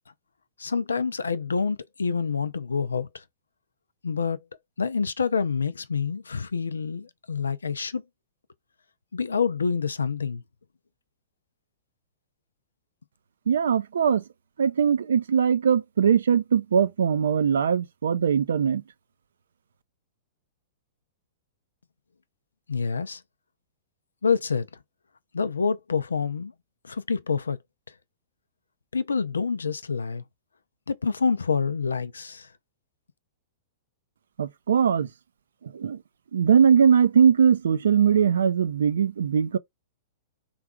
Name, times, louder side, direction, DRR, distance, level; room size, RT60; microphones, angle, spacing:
voice 1, 0.6-3.2 4.0-4.4 4.8-8.0 9.1-10.4 22.7-23.2 24.2-24.7 25.3-26.5 26.8-27.6 28.9-30.2 30.9-32.5, left 5 dB, 85° left, 0.4 m, -27 dB
voice 2, 13.5-14.2 14.6-18.8 34.4-35.1 35.7-36.0 36.3-39.6, right 7 dB, 75° right, 0.4 m, -21 dB
3.2 x 2.4 x 3.6 m
hypercardioid pair, 110°, 0 cm